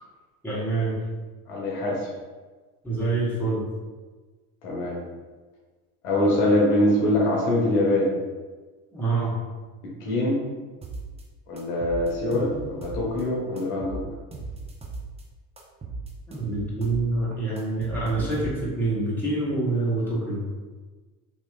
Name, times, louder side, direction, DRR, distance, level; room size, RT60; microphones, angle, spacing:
voice 1, 0.4-1.0 2.8-3.7 8.9-9.3 16.3-20.4, right 2 dB, 5° left, -8 dB, 1.2 m, -26 dB
voice 2, 1.5-2.1 4.6-5.0 6.0-8.1 10.0-10.4 11.5-14.0, left 1 dB, 65° left, -4 dB, 1.0 m, -23 dB
sound 1, 10.8-11.2 11.6-13.2 13.6-15.2 15.6-17.1 17.3-18.8, right 3 dB, 15° right, 0.4 m, -37 dB
2.9 x 2.9 x 2.3 m, 1.3 s
figure-of-eight pair, 65°, 47 cm